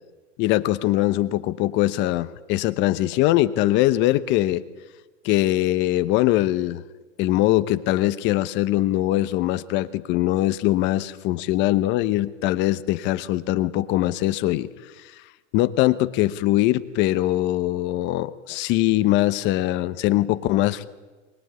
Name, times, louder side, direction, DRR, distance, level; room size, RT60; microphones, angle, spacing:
voice 1, 0.4-4.6 5.2-6.8 7.2-14.7 15.5-20.9, left 15 dB, 30° left, 13 dB, 1.0 m, -22 dB
23.5 x 21.0 x 9.6 m, 1.2 s
hypercardioid pair, 140°, 35 cm